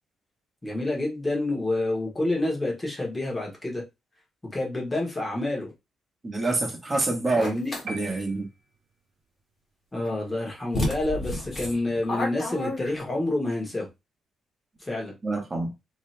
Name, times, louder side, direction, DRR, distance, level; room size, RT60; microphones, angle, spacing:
voice 1, 0.6-3.8 4.5-5.7 7.3-7.7 9.9-13.9 14.8-15.1, left 2 dB, 15° left, 1.5 m, -28 dB
voice 2, 6.2-7.6 7.9-8.5 15.2-15.7, right 2 dB, 20° right, 1.3 m, -26 dB
sound 1, 7.4-7.8 10.1-10.2 10.7-13.3, left 1 dB, 30° left, 1.6 m, -30 dB
sound 2, 7.9-9.1, right 2 dB, 50° right, 0.9 m, -41 dB
3.5 x 2.9 x 3.3 m
cardioid pair, 150°, 0 cm